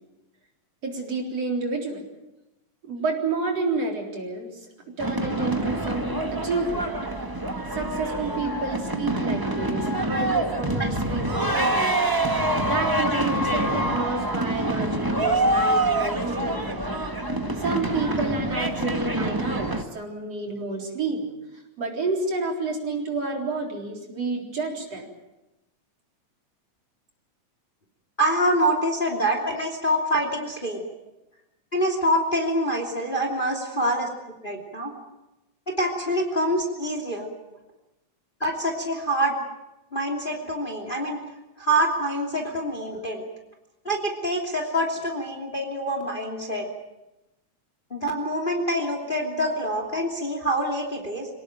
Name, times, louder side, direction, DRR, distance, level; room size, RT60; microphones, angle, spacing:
voice 1, 0.8-2.1 2.8-4.6 5.0-7.0 7.7-12.1 12.6-17.0 17.6-21.2 21.8-25.1, right 3 dB, 55° right, 1 dB, 5.0 m, -30 dB
sound 1, 5.0-19.8, right 1 dB, 15° right, 0.9 m, -26 dB
voice 2, 28.2-30.8 31.7-34.1 34.4-34.9 35.7-37.3 38.4-39.3 39.9-41.2 41.6-43.2 43.8-46.6 47.9-51.3, equal, 15° left, 3 dB, 2.9 m, -25 dB
26.0 x 18.0 x 9.0 m, 0.99 s
omnidirectional pair, 3.4 m